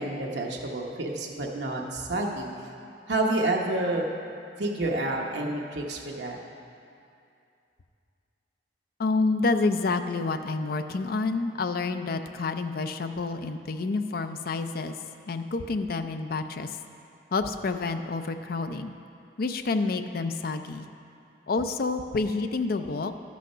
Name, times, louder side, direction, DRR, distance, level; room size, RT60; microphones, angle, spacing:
voice 1, 0.0-2.5 3.1-4.1 4.6-6.4, right 2 dB, 75° right, -1 dB, 1.0 m, -29 dB
voice 2, 9.0-15.0 15.3-16.8 17.3-18.9 19.4-20.9 21.5-23.1, left 3 dB, 55° left, 8 dB, 0.5 m, -28 dB
12.5 x 6.3 x 5.5 m, 2.5 s
head